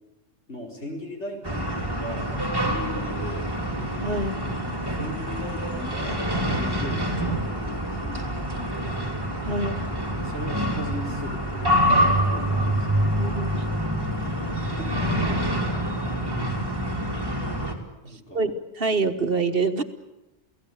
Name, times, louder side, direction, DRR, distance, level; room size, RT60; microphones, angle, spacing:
voice 1, 0.5-2.3 2.6-3.5 4.8-8.6 10.2-13.0 14.1-15.1 16.2-16.4 18.0-18.5, left 1 dB, 85° left, 0 dB, 4.9 m, -38 dB
sound 1, 1.4-17.7, equal, 20° right, 3.1 m, -26 dB
voice 2, 4.0-4.4 9.4-9.8 13.2-13.6 18.3-19.8, right 3 dB, 55° right, 8 dB, 1.5 m, -26 dB
29.5 x 17.0 x 8.6 m, 0.99 s
omnidirectional pair, 1.1 m